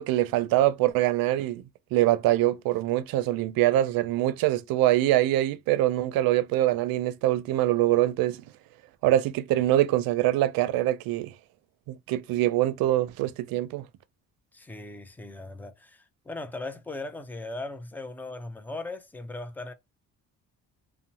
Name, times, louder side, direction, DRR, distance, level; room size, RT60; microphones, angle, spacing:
voice 1, 0.0-1.6 1.9-8.4 9.0-11.3 11.9-13.8, right 14 dB, 85° right, 0.5 m, -24 dB
voice 2, 14.5-19.7, left 2 dB, 5° left, 0.3 m, -38 dB
2.6 x 2.1 x 2.8 m
cardioid pair, 120°, 34 cm